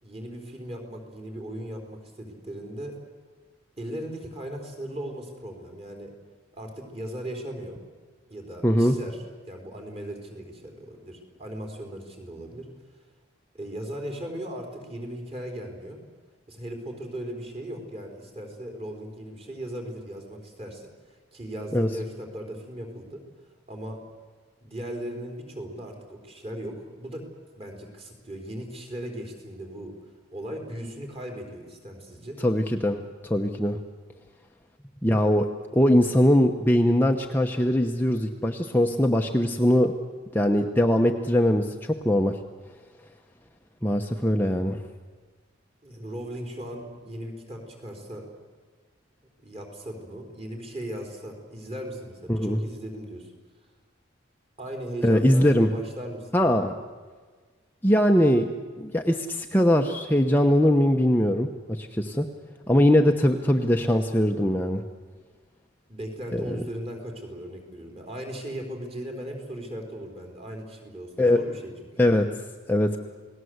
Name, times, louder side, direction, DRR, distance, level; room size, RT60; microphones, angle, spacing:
voice 1, 0.0-2.9 3.8-6.1 6.5-7.8 8.3-12.7 13.5-16.0 16.5-23.2 23.7-24.0 24.6-27.3 27.5-32.4 45.8-48.3 49.4-53.3 54.6-56.6 65.9-71.9, right 1 dB, 30° right, 3 dB, 4.5 m, -38 dB
voice 2, 8.6-8.9 21.7-21.9 32.4-33.8 35.0-35.5 35.7-39.9 40.3-42.4 43.8-44.8 52.3-52.6 55.0-55.7 56.3-56.7 57.8-58.5 58.8-62.3 62.7-64.8 66.3-66.6 71.2-71.4 72.0-72.3 72.7-73.0, left 1 dB, 10° left, 2 dB, 0.9 m, -21 dB
29.0 x 19.5 x 8.1 m, 1.5 s
head